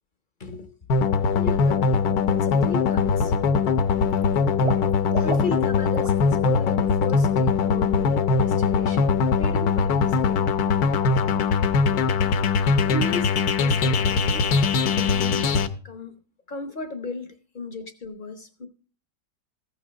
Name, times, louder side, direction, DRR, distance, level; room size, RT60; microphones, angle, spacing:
voice 1, 0.4-0.7 1.4-3.5 5.1-9.1 9.4-10.4 12.9-16.2 16.5-18.7, left 3 dB, 45° left, 0.7 m, -36 dB
sound 1, 0.9-15.7, left 5 dB, 65° left, 1.1 m, -21 dB
Water / Liquid, 2.0-2.3 2.7-3.3 3.6-6.2 6.4-6.7 7.0-7.1, right 3 dB, 45° right, 0.4 m, -36 dB
14.5 x 6.2 x 5.1 m
omnidirectional pair, 1.9 m